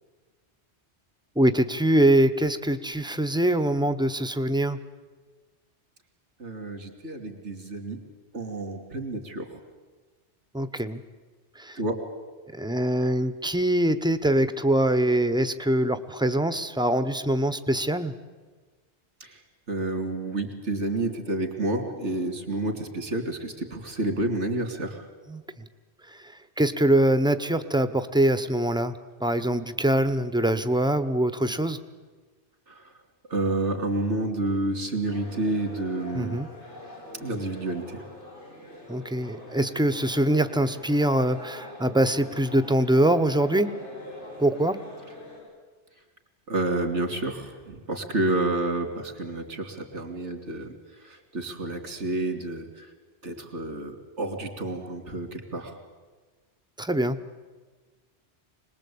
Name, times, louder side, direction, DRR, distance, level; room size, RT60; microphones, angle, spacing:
voice 1, 1.4-4.8 10.5-11.0 11.6-11.8 12.5-18.1 25.3-25.4 26.6-28.9 29.2-31.8 36.1-36.5 38.9-43.7 44.4-44.8 56.8-57.2, right 1 dB, 5° right, 11 dB, 0.8 m, -23 dB
voice 2, 6.4-8.0 8.3-9.6 11.8-11.9 19.2-19.4 19.7-25.0 32.7-32.9 33.3-36.4 37.2-38.0 46.5-52.9 53.2-55.8, right 2 dB, 85° right, 5 dB, 3.1 m, -30 dB
sound 1, 35.1-45.4, left 1 dB, 85° left, 8.2 m, -43 dB
26.0 x 20.0 x 8.6 m, 1.4 s
omnidirectional pair, 1.2 m